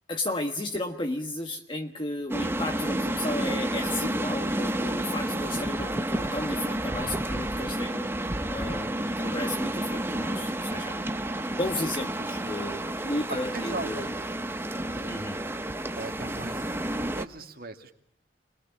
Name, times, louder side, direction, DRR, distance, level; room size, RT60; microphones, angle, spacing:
voice 1, 0.1-8.1 8.5-11.0 11.6-14.1 15.1-15.4, left 1 dB, 25° left, 4 dB, 1.4 m, -33 dB
sound 1, 2.3-17.3, right 1 dB, 15° right, 1.0 m, -30 dB
voice 2, 13.3-14.3 14.8-15.2 15.9-16.8 17.2-18.0, right 2 dB, 55° right, 6 dB, 2.5 m, -39 dB
29.5 x 22.0 x 7.1 m, 0.68 s
head